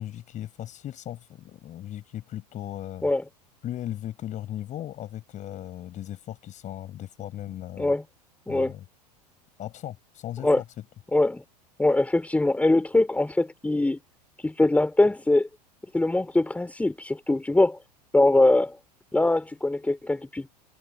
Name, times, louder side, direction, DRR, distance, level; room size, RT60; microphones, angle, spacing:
voice 1, 0.0-3.1 3.6-7.9 8.5-8.8 9.6-10.6, left 12 dB, 35° left, 5.8 m, -37 dB
voice 2, 11.1-11.4 11.8-14.0 14.4-15.5 15.9-17.8 18.1-18.8 19.1-20.5, left 2 dB, 5° left, 4.0 m, -22 dB
figure-of-eight pair, 85°, 21 cm